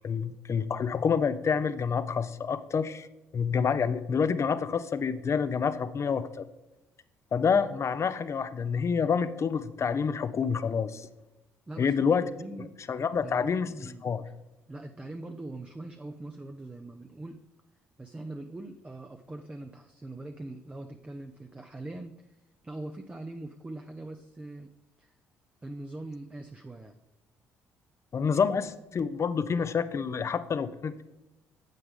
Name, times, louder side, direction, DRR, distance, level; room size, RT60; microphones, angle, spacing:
voice 1, 0.0-3.1 3.3-6.5 7.3-11.1 11.8-12.3 12.6-14.2 28.1-31.1, left 6 dB, 45° left, 13 dB, 0.7 m, -28 dB
voice 2, 11.7-12.7 13.2-14.1 14.7-17.4 18.0-22.1 22.6-24.7 25.0-25.1 25.6-26.9, right 2 dB, 20° right, 5 dB, 0.7 m, -42 dB
9.2 x 8.0 x 3.7 m, 1.0 s
hypercardioid pair, 55°, 7 cm